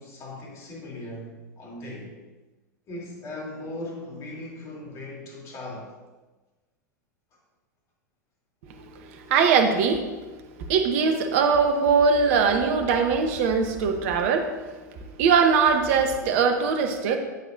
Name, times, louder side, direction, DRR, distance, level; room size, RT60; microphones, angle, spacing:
voice 1, 0.0-2.2 2.9-5.9, left 1 dB, 35° left, -3 dB, 3.4 m, -38 dB
voice 2, 8.8-10.1 10.6-14.7 15.2-17.2, right 5 dB, 50° right, 6 dB, 1.2 m, -21 dB
14.0 x 8.2 x 2.8 m, 1.2 s
figure-of-eight pair, 90°, 10 cm